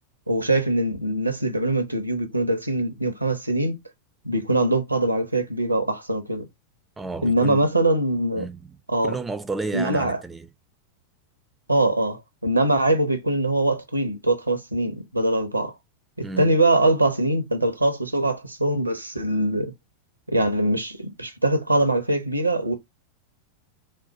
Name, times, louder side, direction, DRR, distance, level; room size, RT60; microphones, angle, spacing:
voice 1, 0.3-3.8 4.2-6.5 7.2-8.5 8.9-9.1 9.7-10.2 11.7-15.7 16.4-19.7 20.3-22.7, right 1 dB, 85° right, 0.8 m, -22 dB
voice 2, 7.0-7.7 8.4-8.8 9.0-10.5 16.2-16.6, right 3 dB, 10° right, 0.4 m, -32 dB
4.2 x 2.1 x 2.9 m
figure-of-eight pair, 90°, 0 cm